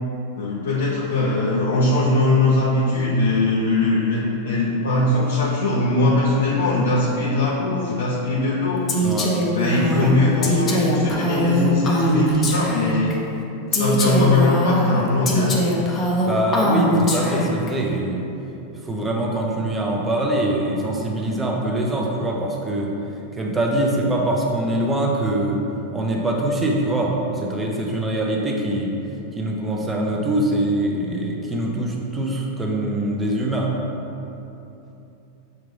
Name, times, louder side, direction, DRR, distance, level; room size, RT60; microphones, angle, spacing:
voice 1, 0.3-8.8 9.5-13.1 13.7-15.6, left 2 dB, 90° left, -6 dB, 0.6 m, -21 dB
Female speech woman speaking, 8.9-13.1 13.7-17.7, equal, 25° left, 0.6 m, -21 dB
voice 2, 9.0-9.3 9.8-10.1 16.3-18.2 18.8-22.9 23.4-25.6 25.9-28.9 29.4-33.7, right 1 dB, 15° right, -1 dB, 0.6 m, -23 dB
5.9 x 2.4 x 3.2 m, 2.9 s
hypercardioid pair, 125°, 0 cm